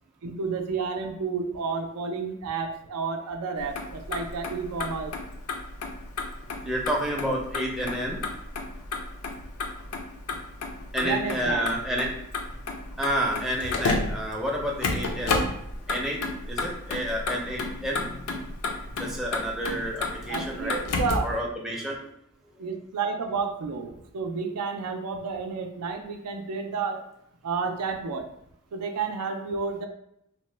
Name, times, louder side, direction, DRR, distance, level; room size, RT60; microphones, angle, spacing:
voice 1, 0.2-5.1 11.0-11.7 20.3-21.3 22.6-27.0 27.4-28.3 28.7-29.9, right 5 dB, 85° right, 5 dB, 0.4 m, -31 dB
Motor vehicle (road), 3.6-21.4, left 3 dB, 80° left, 0.5 m, -32 dB
voice 2, 6.6-8.2 10.9-12.2 13.0-15.5 15.9-16.2 16.5-18.3 19.0-20.8 21.2-22.0, equal, ahead, -3 dB, 0.4 m, -29 dB
2.8 x 2.0 x 3.2 m, 0.78 s
head